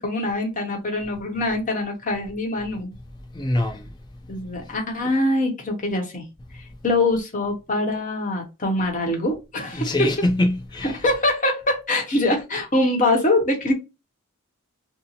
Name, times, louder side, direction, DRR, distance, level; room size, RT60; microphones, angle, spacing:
voice 1, 0.0-2.9 4.3-6.2 6.8-10.1 10.8-13.7, left 2 dB, 35° left, 0.9 m, -23 dB
voice 2, 3.3-3.9 9.7-11.0, left 1 dB, 20° left, 0.5 m, -23 dB
2.8 x 2.0 x 3.9 m
head